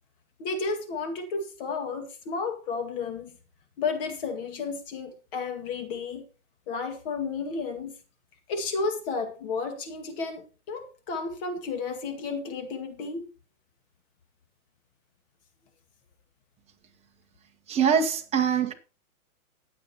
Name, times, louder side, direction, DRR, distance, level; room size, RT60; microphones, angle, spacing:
voice 1, 0.4-3.4 3.8-6.3 6.7-8.0 8.5-13.3, left 4 dB, 40° left, 2.0 m, -32 dB
voice 2, 17.7-18.7, right 7 dB, 15° right, 1.2 m, -23 dB
20.0 x 7.6 x 2.9 m
hypercardioid pair, 150°, 44 cm